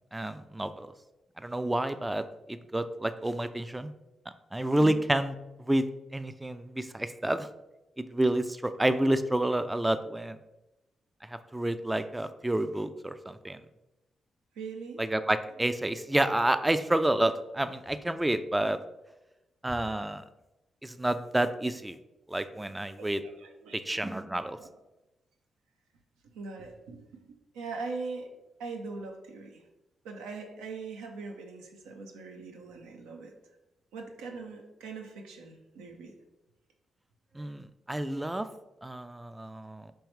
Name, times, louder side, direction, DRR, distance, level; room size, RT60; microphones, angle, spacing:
voice 1, 0.1-0.9 1.4-3.9 4.5-5.3 5.7-5.9 6.1-7.5 8.0-10.4 11.5-13.6 15.0-18.8 19.6-20.2 20.8-22.0 22.3-23.2 23.9-24.6 37.4-38.5 38.8-39.8, right 1 dB, 15° right, 11 dB, 0.3 m, -29 dB
voice 2, 14.6-15.0 23.0-23.8 24.6-24.7 26.3-28.3 28.6-29.6 30.0-33.3 33.9-36.1, right 4 dB, 80° right, 3 dB, 0.5 m, -41 dB
4.6 x 3.1 x 3.0 m, 0.96 s
hypercardioid pair, 40°, 0 cm